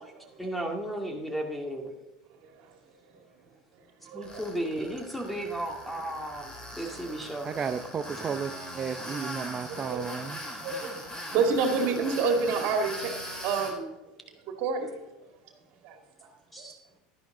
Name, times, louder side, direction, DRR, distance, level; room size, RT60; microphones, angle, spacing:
voice 1, 0.4-1.9 4.1-7.5 16.5-16.8, right 1 dB, 5° left, 2.1 m, -34 dB
voice 2, 4.1-4.4 9.7-10.0 10.6-13.1 13.4-13.9 14.5-15.0 15.8-15.9, right 4 dB, 60° right, 2.2 m, -28 dB
Tools, 4.2-13.7, equal, 20° left, 3.6 m, -40 dB
voice 3, 7.4-10.4, right 6 dB, 30° right, 0.7 m, -33 dB
12.0 x 10.5 x 3.8 m
supercardioid pair, 105°, 3 cm